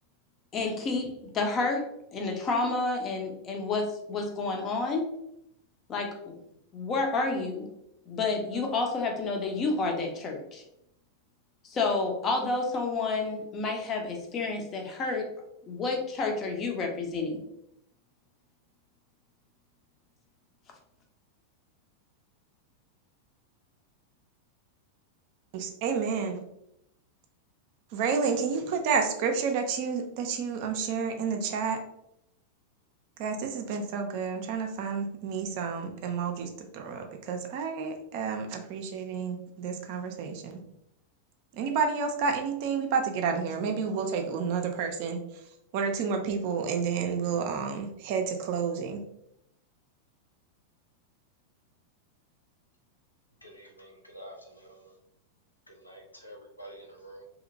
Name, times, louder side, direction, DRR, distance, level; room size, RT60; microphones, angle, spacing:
voice 1, 0.5-5.0 5.9-6.4 6.7-7.7 8.1-10.6 11.6-15.3 15.7-17.4, left 3 dB, 30° left, 2 dB, 0.6 m, -30 dB
voice 2, 25.5-26.4 27.9-31.8 33.2-40.6 41.5-45.2 45.7-49.0, right 5 dB, 45° right, 4 dB, 0.4 m, -30 dB
voice 3, 53.4-54.9 55.7-57.3, right 1 dB, 85° left, 1 dB, 0.5 m, -48 dB
2.8 x 2.8 x 2.6 m, 0.79 s
figure-of-eight pair, 90°, 0 cm